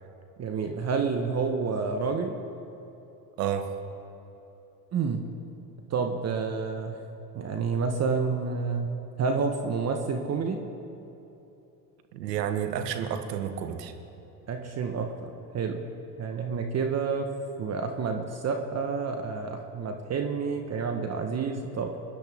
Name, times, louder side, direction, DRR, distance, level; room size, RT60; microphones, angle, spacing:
voice 1, 0.4-2.4 4.9-5.2 5.9-7.0 7.3-8.9 9.2-10.6 14.5-15.8 16.2-17.3 17.6-22.0, right 5 dB, 30° right, 5 dB, 1.1 m, -29 dB
voice 2, 3.4-3.8 12.1-13.9, right 9 dB, 85° right, 8 dB, 1.2 m, -30 dB
22.0 x 10.5 x 3.6 m, 3.0 s
hypercardioid pair, 90°, 48 cm